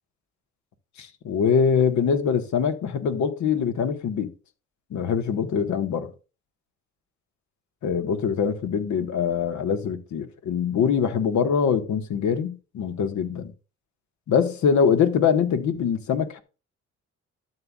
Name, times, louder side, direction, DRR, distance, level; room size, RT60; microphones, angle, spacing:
voice 1, 1.0-4.3 4.9-6.1 7.8-13.5 14.3-16.4, left 7 dB, 70° left, 1.5 m, -23 dB
12.0 x 7.5 x 2.4 m
cardioid pair, 90°, 30 cm